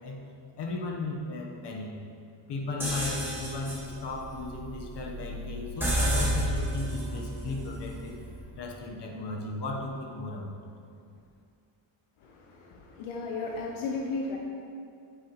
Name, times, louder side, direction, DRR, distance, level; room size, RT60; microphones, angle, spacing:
voice 1, 0.6-1.9 2.5-8.2 8.6-10.7, left 2 dB, 55° left, 0 dB, 1.3 m, -35 dB
sound 1, 2.8-8.6, equal, 5° right, 1.8 m, -32 dB
voice 2, 12.2-14.4, left 3 dB, 75° left, 0 dB, 1.0 m, -35 dB
8.9 x 8.5 x 3.2 m, 2.4 s
cardioid pair, 145°, 49 cm